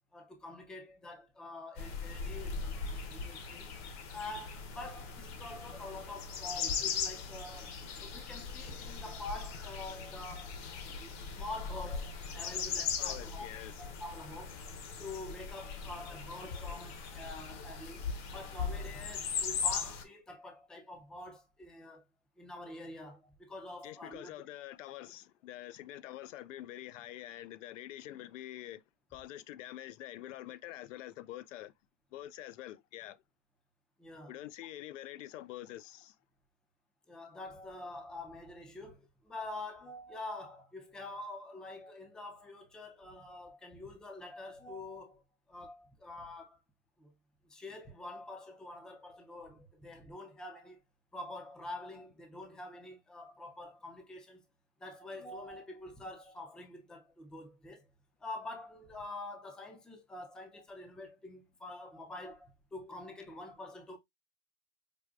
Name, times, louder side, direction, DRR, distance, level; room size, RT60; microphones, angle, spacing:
voice 1, 0.1-3.7 4.1-10.5 11.0-13.5 13.8-14.6 15.0-22.0 22.4-24.3 34.0-34.3 37.1-45.2 45.5-46.6 47.0-47.1 47.5-50.8 51.1-54.4 54.8-57.9 58.2-64.0, left 2 dB, ahead, 0.4 m, -46 dB
sound 1, 1.8-20.0, left 6 dB, 45° left, 0.9 m, -39 dB
voice 2, 13.0-13.7 23.8-28.8 29.1-31.7 32.1-33.2 34.3-36.1, left 14 dB, 80° left, 0.5 m, -46 dB
5.0 x 2.1 x 2.4 m
hypercardioid pair, 125°, 37 cm